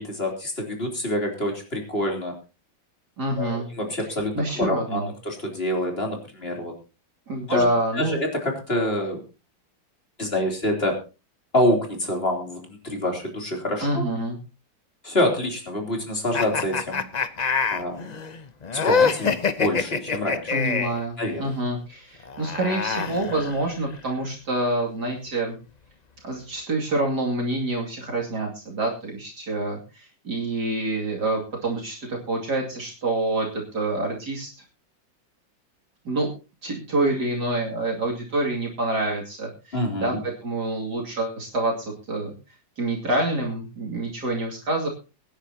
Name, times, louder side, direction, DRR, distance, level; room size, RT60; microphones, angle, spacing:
voice 1, 0.0-2.4 3.4-6.8 7.5-7.7 7.9-9.2 10.2-11.0 11.5-14.0 15.0-17.1 17.7-18.2 18.7-20.5 21.2-21.4 39.7-40.2, left 1 dB, 30° left, 2 dB, 3.6 m, -26 dB
voice 2, 3.2-3.7 4.3-5.1 7.3-8.2 13.8-14.4 20.5-25.6 26.2-34.5 36.0-36.3 36.6-42.3 42.8-44.9, right 2 dB, 60° right, -1 dB, 3.1 m, -27 dB
sound 1, 16.3-21.0 22.2-23.9, left 5 dB, 90° left, 0.3 m, -25 dB
23.5 x 10.0 x 2.9 m, 0.31 s
omnidirectional pair, 2.0 m